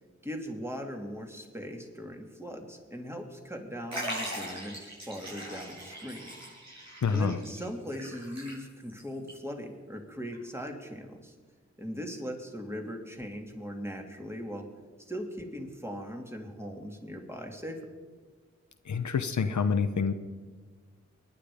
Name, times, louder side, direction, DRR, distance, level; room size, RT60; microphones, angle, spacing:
voice 1, 0.2-6.3 7.1-11.3 11.8-14.7 15.0-17.9, equal, 10° right, 2 dB, 2.9 m, -39 dB
Liquid, 3.9-9.0 9.3-9.4 10.3-10.4, equal, 65° right, 6.6 m, -40 dB
voice 2, 7.0-7.4 18.9-20.1, left 5 dB, 80° left, 9 dB, 0.8 m, -27 dB
23.5 x 10.5 x 5.1 m, 1.4 s
cardioid pair, 40°, 29 cm